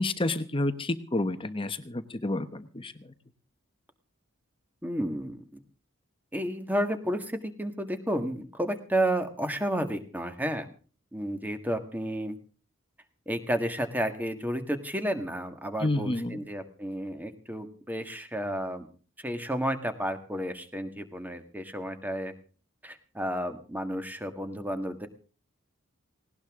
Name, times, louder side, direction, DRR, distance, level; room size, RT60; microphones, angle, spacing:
voice 1, 0.0-2.9 15.8-16.4, left 2 dB, 25° left, 10 dB, 1.0 m, -29 dB
voice 2, 4.8-5.4 6.3-10.7 11.1-12.4 13.3-18.9 19.2-22.3 22.8-25.1, right 1 dB, 10° right, 7 dB, 1.8 m, -31 dB
18.5 x 18.5 x 3.7 m, 0.39 s
head